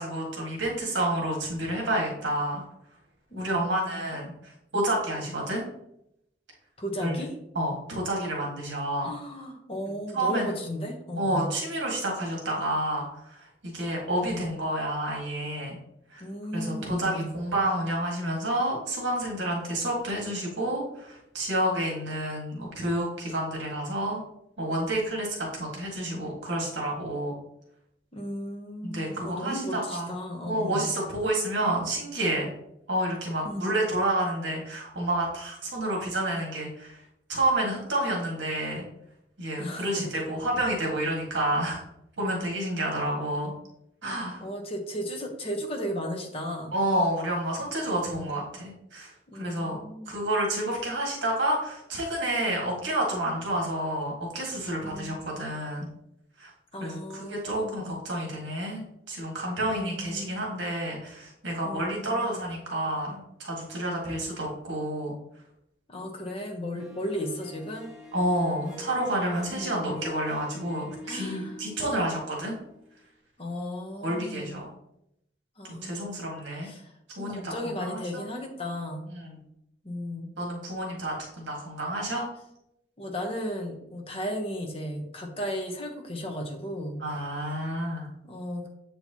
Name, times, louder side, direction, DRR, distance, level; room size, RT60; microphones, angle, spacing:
voice 1, 0.0-2.6 3.4-5.6 7.0-7.2 7.5-9.1 10.1-10.5 11.1-15.8 16.1-16.2 16.5-24.2 24.6-27.3 28.8-30.2 30.4-32.5 32.9-37.0 37.3-38.9 39.4-41.8 42.2-43.5 44.0-44.4 46.7-49.8 50.1-55.9 56.4-56.5 56.8-57.0 57.3-65.1 68.1-72.6 74.0-74.7 75.6-76.7 77.2-77.5 77.8-78.2 79.1-79.4 80.4-82.2 87.0-88.1, right 1 dB, 75° right, -1 dB, 1.7 m, -29 dB
voice 2, 3.3-4.0 6.8-7.4 9.0-11.5 14.2-14.5 16.2-17.3 28.1-30.9 33.4-33.8 39.6-40.1 44.0-46.7 47.9-48.4 49.3-50.2 54.8-55.2 56.7-57.9 59.6-60.4 61.6-62.3 65.9-67.9 69.5-69.9 71.0-72.1 73.4-74.6 75.6-76.2 76.6-76.9 77.2-79.0 79.8-80.3 83.0-87.0 87.6-87.7 88.2-88.7, equal, 30° left, 2 dB, 1.0 m, -35 dB
Harp, 66.8-73.0, left 2 dB, 5° right, 1.2 m, -45 dB
7.5 x 4.5 x 2.8 m, 0.79 s
head